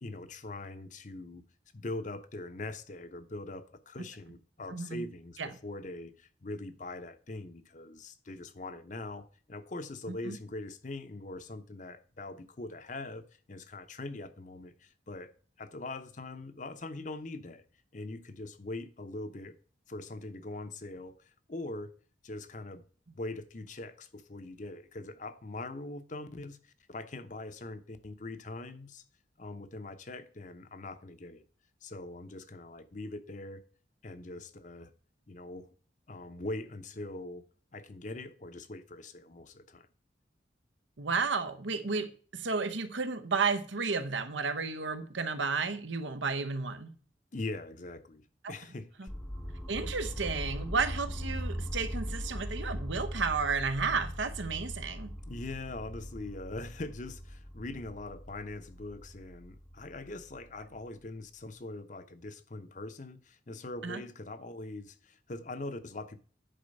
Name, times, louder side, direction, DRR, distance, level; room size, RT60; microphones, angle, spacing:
voice 1, 0.0-1.4 1.7-17.6 17.9-19.6 19.9-21.9 22.2-22.8 23.1-29.0 29.4-31.5 31.8-33.6 34.0-34.9 35.3-35.7 36.1-37.5 37.7-39.9 47.3-48.9 55.3-66.2, left 2 dB, 45° left, 0.8 m, -42 dB
voice 2, 4.7-5.1 5.4-5.5 10.1-10.4 41.0-47.0 48.4-48.5 49.0-49.1 49.7-55.1 63.8-64.0, right 4 dB, 90° right, 1.0 m, -32 dB
sound 1, 49.1-61.0, equal, 5° left, 0.7 m, -40 dB
10.0 x 4.4 x 5.3 m
head